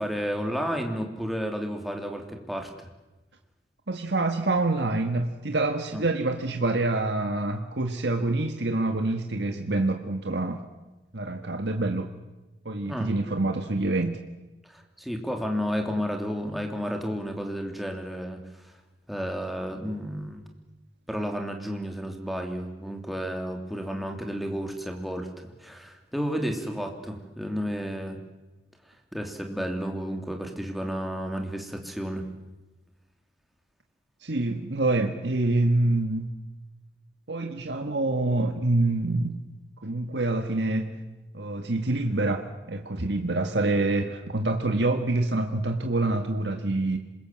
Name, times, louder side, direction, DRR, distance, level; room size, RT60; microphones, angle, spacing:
voice 1, 0.0-2.9 5.9-6.0 12.9-13.1 14.6-18.4 19.1-20.4 21.1-28.2 29.1-32.2, equal, ahead, 2 dB, 3.1 m, -32 dB
voice 2, 3.9-10.6 11.1-12.1 12.7-14.2 34.2-36.3 37.3-39.4 39.8-41.0 41.3-47.0, right 2 dB, 75° right, 5 dB, 1.7 m, -26 dB
26.5 x 22.0 x 7.6 m, 1.1 s
head